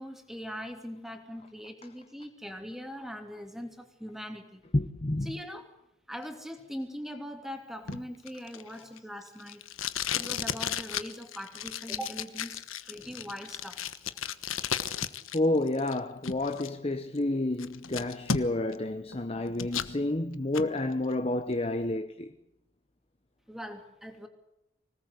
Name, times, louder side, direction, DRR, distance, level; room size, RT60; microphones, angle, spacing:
voice 1, 0.0-4.6 5.2-5.7 6.1-9.6 10.1-13.8 23.5-24.3, equal, ahead, 2.8 m, -41 dB
voice 2, 4.7-5.3 15.3-22.3, left 2 dB, 30° left, 0.9 m, -29 dB
Packing tape duct tape, 7.9-15.4 15.7-16.7 17.2-17.3 17.6-18.8 19.1-19.9 20.3-20.7, left 7 dB, 85° left, 1.3 m, -34 dB
25.5 x 18.5 x 8.3 m
head